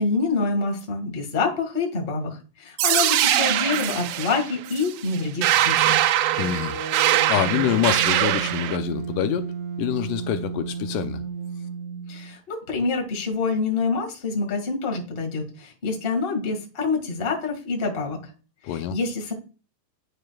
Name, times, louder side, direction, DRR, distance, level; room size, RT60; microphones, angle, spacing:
voice 1, 0.0-6.0 12.1-18.3 18.7-19.3, left 4 dB, 25° left, 1.2 m, -26 dB
sound 1, 2.8-8.8, right 13 dB, 85° right, 2.1 m, -22 dB
sound 2, 6.3-12.4, right 6 dB, 65° right, 2.2 m, -33 dB
voice 2, 6.4-6.7 7.0-9.5 9.8-11.2 18.6-19.0, left 11 dB, 80° left, 2.1 m, -26 dB
10.5 x 4.9 x 2.3 m
omnidirectional pair, 3.8 m